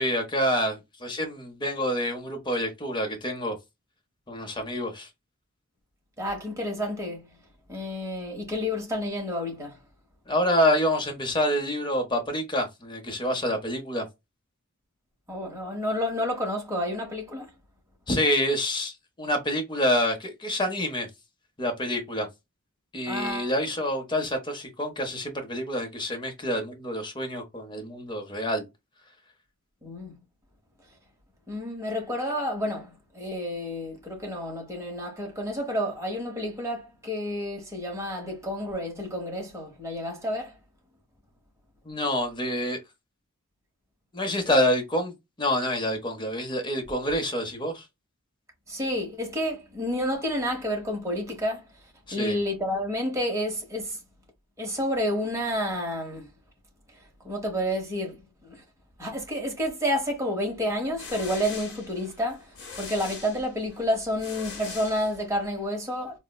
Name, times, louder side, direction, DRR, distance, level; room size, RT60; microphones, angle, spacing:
voice 1, 0.0-3.6 4.3-5.1 10.3-14.1 18.1-21.1 21.6-22.3 22.9-28.7 41.8-42.8 44.1-47.9 52.1-52.4, left 1 dB, 20° left, 0.7 m, -27 dB
voice 2, 6.2-7.3 7.7-9.8 15.3-17.5 23.1-23.5 29.8-30.2 31.5-40.5 44.5-44.6 48.7-51.7 52.1-54.0 54.6-56.3 57.2-58.6 59.0-66.2, equal, 15° right, 0.9 m, -30 dB
sound 1, 60.7-65.6, left 5 dB, 55° left, 0.9 m, -42 dB
4.0 x 2.0 x 2.3 m
head